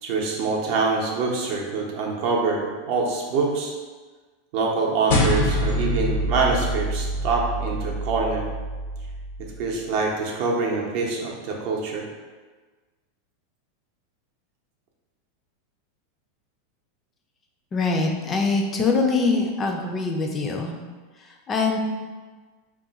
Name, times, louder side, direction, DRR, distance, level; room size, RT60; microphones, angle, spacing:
voice 1, 0.0-3.7 4.5-8.4 9.6-12.0, right 4 dB, 55° right, -1 dB, 0.6 m, -25 dB
sound 1, 5.1-9.7, equal, 70° left, 0.6 m, -26 dB
voice 2, 17.7-20.8 21.2-21.8, left 3 dB, 20° left, 1 dB, 0.4 m, -23 dB
2.4 x 2.2 x 3.9 m, 1.4 s
supercardioid pair, 140°, 0 cm